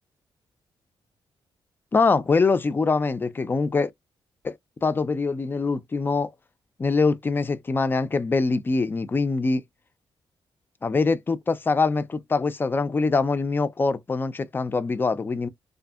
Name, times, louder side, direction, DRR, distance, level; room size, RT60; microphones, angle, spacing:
voice 1, 1.9-3.9 4.4-4.6 4.8-6.3 6.8-9.6 10.8-15.5, left 4 dB, 25° left, 0.3 m, -23 dB
2.6 x 2.4 x 2.3 m
cardioid pair, 125°, 9 cm